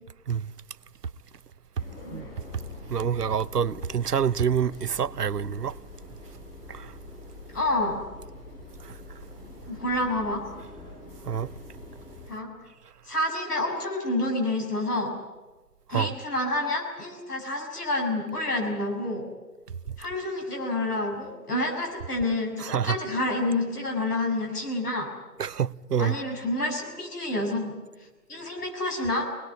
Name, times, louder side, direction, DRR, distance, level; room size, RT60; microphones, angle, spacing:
sound 1, 1.8-12.3, left 2 dB, 35° left, 7.1 m, -44 dB
voice 1, 2.9-5.7 6.7-6.9 8.8-9.0 11.2-11.5 15.9-16.1 22.6-23.0 25.4-26.2, right 7 dB, 75° right, 0.8 m, -27 dB
voice 2, 7.5-8.0 9.7-10.4 12.3-12.5 13.1-15.1 15.9-19.2 20.0-25.1 26.0-27.7 28.3-29.3, left 2 dB, 70° left, 6.9 m, -28 dB
24.5 x 20.5 x 9.8 m
figure-of-eight pair, 140°, 48 cm